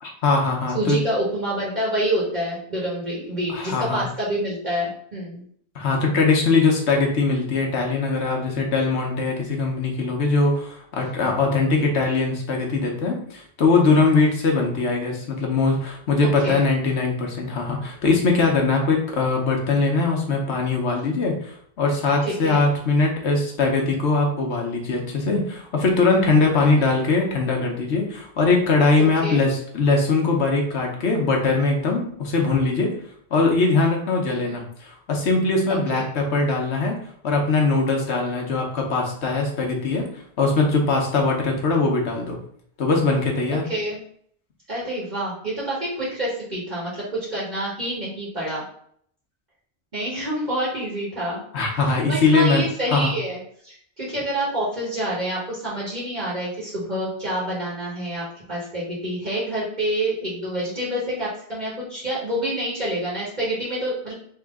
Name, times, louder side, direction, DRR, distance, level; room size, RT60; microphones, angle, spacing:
voice 1, 0.0-1.0 3.5-4.1 5.7-32.9 33.3-37.0 37.2-40.1 40.4-42.4 42.8-43.6 51.5-52.6 52.9-53.1, left 3 dB, 90° left, 1 dB, 1.2 m, -21 dB
voice 2, 0.7-5.4 16.4-16.6 22.2-22.7 26.6-26.7 29.2-29.4 35.7-36.0 43.7-44.0 44.7-47.0 47.3-48.6 49.9-51.4 51.7-64.1, right 1 dB, 45° right, -7 dB, 1.3 m, -27 dB
3.7 x 2.9 x 3.6 m, 0.65 s
omnidirectional pair, 1.1 m